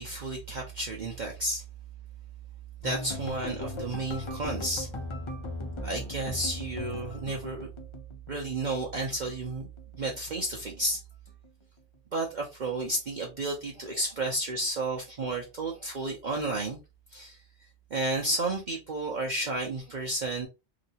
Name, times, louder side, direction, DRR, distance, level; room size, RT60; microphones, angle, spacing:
voice 1, 0.0-1.6 2.8-4.9 5.8-7.7 8.3-9.7 9.9-11.0 12.1-16.8 17.1-17.4 17.9-20.5, right 2 dB, 50° right, 0.7 m, -32 dB
sound 1, 2.8-9.0 9.3-10.3 10.6-11.0 11.3-11.5, left 2 dB, 45° left, 0.4 m, -38 dB
2.9 x 2.9 x 2.7 m
omnidirectional pair, 1.2 m